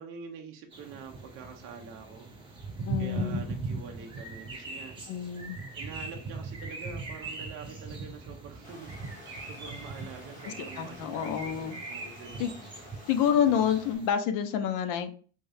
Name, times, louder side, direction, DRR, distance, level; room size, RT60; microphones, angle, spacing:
voice 1, 0.0-2.6 3.0-4.9 5.7-12.5, right 6 dB, 40° right, 0.6 m, -46 dB
sound 1, 0.7-14.1, right 3 dB, 15° right, 1.3 m, -40 dB
voice 2, 2.8-3.4 5.1-5.6 10.5-11.7 12.4-12.5 13.1-15.1, left 8 dB, 65° left, 0.7 m, -28 dB
Stream, 8.6-14.0, left 1 dB, 25° left, 1.9 m, -50 dB
3.5 x 2.7 x 3.3 m
cardioid pair, 175°, 33 cm